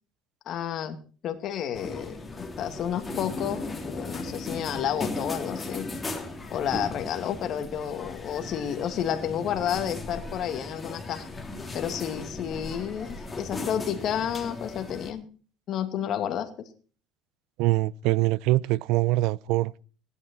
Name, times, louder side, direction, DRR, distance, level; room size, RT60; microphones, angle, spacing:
voice 1, 0.5-1.0 1.2-2.2 2.6-5.9 6.5-11.3 11.7-15.3 15.7-16.5, left 9 dB, 50° left, 2.4 m, -30 dB
sound 1, 1.8-15.1, left 2 dB, 15° left, 3.1 m, -37 dB
voice 2, 17.6-19.7, right 17 dB, 80° right, 0.6 m, -23 dB
17.5 x 11.5 x 4.4 m
cardioid pair, 130°, 0 cm